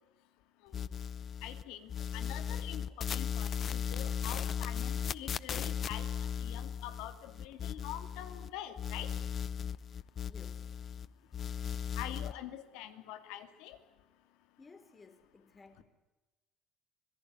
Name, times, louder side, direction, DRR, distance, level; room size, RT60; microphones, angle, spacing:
sound 1, 0.7-1.6 1.9-8.5 8.8-11.1 11.3-12.3, left 8 dB, 35° left, 0.8 m, -37 dB
voice 1, 1.4-6.1 6.4-9.1 12.0-13.8, left 12 dB, 85° left, 2.5 m, -45 dB
voice 2, 10.2-10.7 14.6-15.8, left 4 dB, 20° left, 3.4 m, -57 dB
25.5 x 18.0 x 9.5 m
cardioid pair, 130°, 0 cm